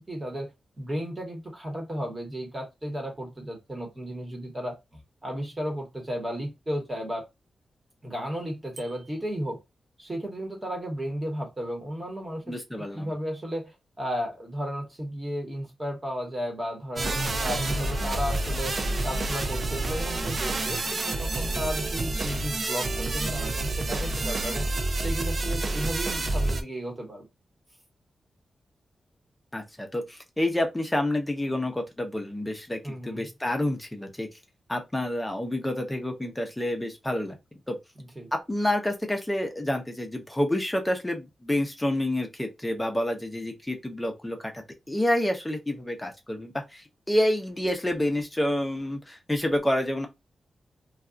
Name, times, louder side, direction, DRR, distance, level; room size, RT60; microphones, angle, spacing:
voice 1, 0.1-4.7 5.2-7.2 8.0-9.6 10.0-12.5 12.9-17.1 17.4-18.8 19.0-24.7 25.0-27.3 32.8-33.3 38.0-38.3, equal, 20° right, 1.1 m, -34 dB
Bicycle bell, 8.7-9.4, right 3 dB, 90° right, 0.6 m, -49 dB
voice 2, 12.5-13.1 29.5-34.3 34.7-37.4 37.7-37.8 38.3-44.4 44.9-50.1, left 1 dB, 10° left, 0.6 m, -28 dB
sound 1, 17.0-22.6, left 6 dB, 75° left, 0.3 m, -43 dB
sound 2, 17.0-26.6, right 2 dB, 40° right, 0.4 m, -28 dB
2.3 x 2.3 x 3.7 m
wide cardioid pair, 160°, 0 cm